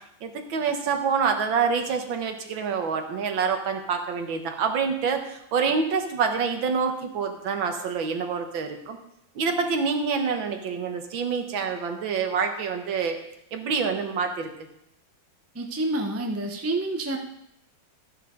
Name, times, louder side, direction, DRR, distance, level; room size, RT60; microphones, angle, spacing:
voice 1, 0.2-9.0 9.4-13.2 13.5-14.5, right 5 dB, 85° right, 5 dB, 2.0 m, -26 dB
voice 2, 15.5-17.2, right 2 dB, 15° right, 3 dB, 0.5 m, -28 dB
13.5 x 9.9 x 3.8 m, 0.77 s
omnidirectional pair, 2.1 m